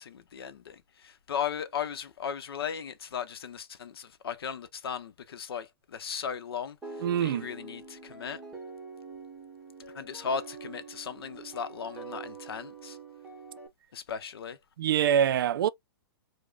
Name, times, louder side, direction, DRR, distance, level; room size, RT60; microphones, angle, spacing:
voice 1, 0.0-8.4 9.9-13.0 13.9-14.6, left 7 dB, 85° left, 0.7 m, -37 dB
sound 1, 6.8-13.7, right 4 dB, 5° right, 1.0 m, -45 dB
voice 2, 7.0-7.5 14.8-15.7, right 9 dB, 65° right, 0.4 m, -24 dB
4.9 x 2.1 x 2.4 m
hypercardioid pair, 155°, 12 cm